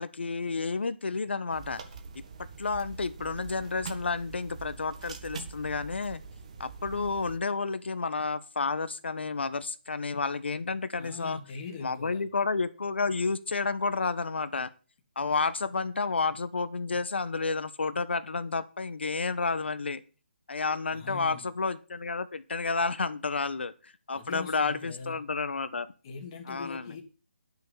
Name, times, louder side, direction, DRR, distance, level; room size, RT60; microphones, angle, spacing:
voice 1, 0.0-1.8 2.1-2.2 2.6-6.2 6.6-11.4 11.8-14.7 15.2-20.0 20.5-25.9 26.5-27.0, left 4 dB, 75° left, 13 dB, 1.2 m, -31 dB
sound 1, 1.5-7.4, right 5 dB, 35° right, 1.5 m, -44 dB
voice 2, 11.0-12.2 20.9-21.5 24.1-25.2 26.0-27.0, left 5 dB, 25° left, 1 dB, 1.8 m, -41 dB
10.5 x 6.4 x 6.9 m, 0.35 s
hypercardioid pair, 170°, 6 cm